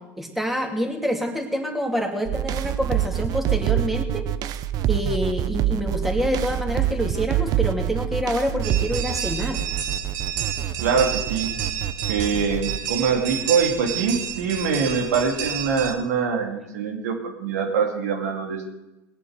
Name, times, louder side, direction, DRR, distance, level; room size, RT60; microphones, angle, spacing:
voice 1, 0.2-4.3 4.9-9.6, equal, ahead, 2 dB, 2.8 m, -26 dB
sound 1, 2.3-12.8, right 11 dB, 50° right, 0.8 m, -26 dB
sound 2, 8.6-15.9, right 9 dB, 70° right, 2.4 m, -30 dB
voice 2, 10.8-11.5 12.1-18.7, right 5 dB, 90° right, 3 dB, 2.8 m, -24 dB
19.5 x 8.3 x 8.1 m, 0.98 s
supercardioid pair, 105°, 8 cm